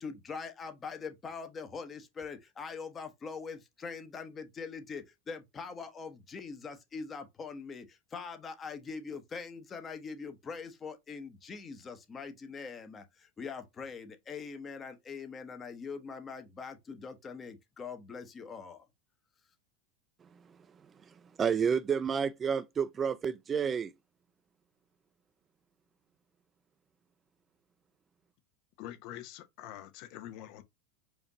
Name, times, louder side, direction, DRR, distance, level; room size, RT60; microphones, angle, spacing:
voice 1, 0.0-18.8, left 5 dB, 25° left, 1.0 m, -43 dB
voice 2, 21.4-23.9, right 7 dB, 25° right, 0.3 m, -30 dB
voice 3, 28.8-30.6, left 12 dB, 60° left, 0.8 m, -45 dB
4.9 x 2.6 x 2.9 m
hypercardioid pair, 105°, 0 cm